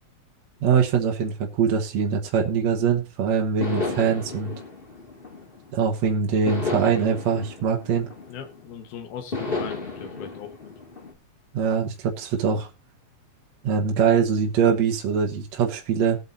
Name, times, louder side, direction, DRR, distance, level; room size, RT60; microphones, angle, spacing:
voice 1, 0.6-4.5 5.7-8.1 11.5-12.7 13.6-16.2, right 6 dB, 60° right, 0 dB, 2.1 m, -23 dB
sound 1, 3.6-5.9 6.5-8.7 9.3-11.1, left 3 dB, 20° left, 1.6 m, -33 dB
voice 2, 8.3-10.7, left 8 dB, 85° left, 7 dB, 3.2 m, -39 dB
19.5 x 8.0 x 2.7 m, 0.28 s
omnidirectional pair, 4.2 m